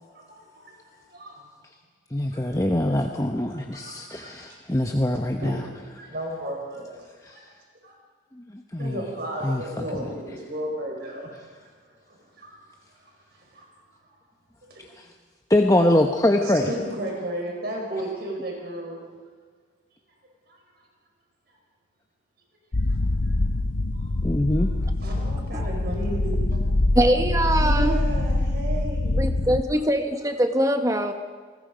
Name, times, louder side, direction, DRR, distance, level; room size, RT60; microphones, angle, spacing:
voice 1, 0.1-1.4 2.3-2.4 2.9-3.0 3.5-4.3 5.4-5.5 6.0-6.9 7.3-7.4 7.8-7.9 8.8-11.7 12.1-12.6 13.5-13.7 14.6-14.8 16.3-19.0 20.5-20.6 22.9-23.0 23.3-23.4 24.0-24.1 24.5-24.6 25.0-26.8 27.6-29.1, right 1 dB, 55° right, -1 dB, 5.0 m, -34 dB
voice 2, 2.1-5.6 8.7-9.0 9.4-9.6 15.5-16.7 24.2-24.7, left 1 dB, 15° left, 3 dB, 1.0 m, -23 dB
sound 1, 22.7-29.6, left 2 dB, 80° left, 0.8 m, -24 dB
voice 3, 26.9-28.0 29.2-31.1, right 1 dB, 15° right, 6 dB, 1.2 m, -23 dB
28.5 x 20.0 x 5.2 m, 1.5 s
head